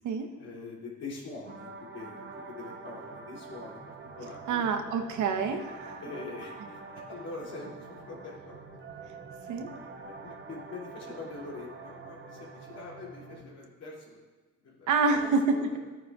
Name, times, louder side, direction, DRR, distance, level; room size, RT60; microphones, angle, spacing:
voice 1, 0.4-4.7 6.0-8.6 8.9-9.0 9.4-9.5 9.8-14.2 14.6-15.8, left 3 dB, 55° left, -4 dB, 2.8 m, -44 dB
sound 1, 1.4-13.4, right 4 dB, 40° right, 1.0 m, -46 dB
voice 2, 4.5-6.0 9.5-9.7 14.9-15.8, right 4 dB, 75° right, 5 dB, 1.0 m, -27 dB
14.0 x 9.1 x 2.4 m, 1.3 s
cardioid pair, 90°, 30 cm